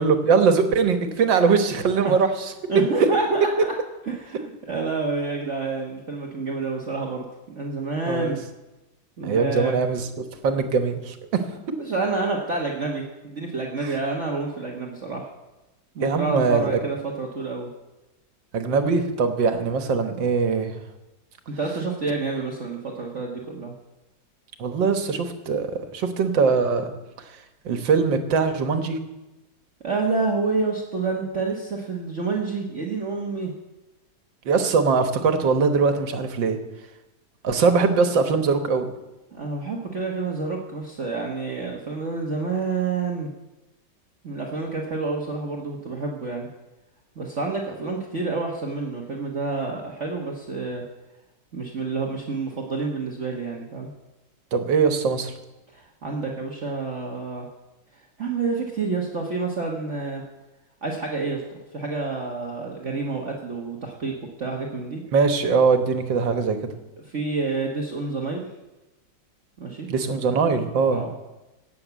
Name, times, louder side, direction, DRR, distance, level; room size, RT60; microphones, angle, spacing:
voice 1, 0.0-2.3 8.1-8.4 9.2-10.1 10.4-11.4 13.8-13.9 16.0-16.8 18.5-20.8 24.6-25.7 25.9-26.9 27.7-29.0 34.5-36.6 37.4-38.9 54.5-55.3 65.1-66.7 69.9-71.0, right 5 dB, 85° right, 7 dB, 2.0 m, -21 dB
voice 2, 2.7-3.7 4.1-7.3 7.5-8.4 9.2-9.8 11.8-15.3 15.9-17.7 21.5-23.7 29.8-33.5 39.3-43.3 44.2-46.5 47.1-50.8 51.5-53.9 55.7-57.5 58.2-60.2 60.8-61.4 61.7-64.1 64.4-65.0 67.1-68.5 69.6-69.9 70.9-71.1, right 3 dB, 45° right, 0 dB, 1.6 m, -28 dB
17.5 x 7.2 x 8.2 m, 1.0 s
omnidirectional pair, 2.0 m